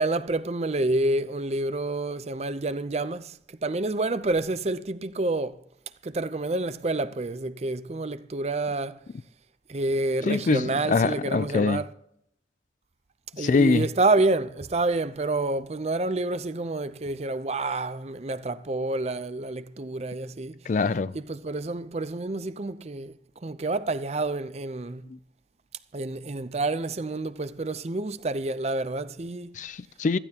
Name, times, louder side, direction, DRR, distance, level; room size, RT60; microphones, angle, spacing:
voice 1, 0.0-5.6 6.0-9.0 9.7-11.9 13.4-20.6 21.1-23.2 23.4-25.0 25.9-29.6, right 2 dB, 35° right, 0.6 m, -28 dB
voice 2, 10.3-11.8 13.4-13.9 20.7-21.1 29.6-30.2, left 4 dB, 45° left, 0.4 m, -24 dB
16.0 x 14.0 x 2.9 m
head